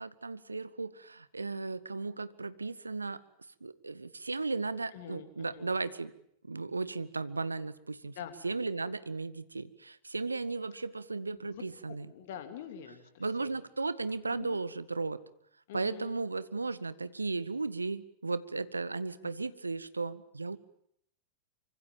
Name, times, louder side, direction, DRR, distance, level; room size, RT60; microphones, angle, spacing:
voice 1, 0.0-3.2 3.6-6.1 6.5-8.1 8.4-12.1 13.2-15.2 15.7-20.6, right 3 dB, 80° right, 16 dB, 0.9 m, -35 dB
voice 2, 4.9-5.7 8.1-8.3 11.3-13.6 14.3-14.6 15.7-16.2, left 9 dB, 55° left, 8 dB, 3.1 m, -46 dB
25.0 x 24.5 x 7.5 m, 0.72 s
figure-of-eight pair, 90°, 0 cm